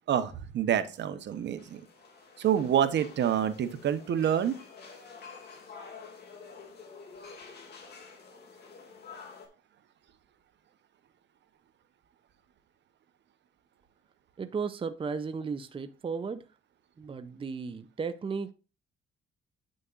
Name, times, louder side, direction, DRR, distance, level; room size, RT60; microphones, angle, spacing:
voice 1, 0.1-1.8 2.4-4.6, right 9 dB, 65° right, 0.9 m, -27 dB
Majiang & repair bycycle, 1.3-9.5, left 5 dB, 55° left, 2.3 m, -49 dB
voice 2, 14.4-16.4 17.0-18.5, right 5 dB, 25° right, 0.6 m, -35 dB
9.1 x 6.4 x 2.5 m
cardioid pair, 90°, 20 cm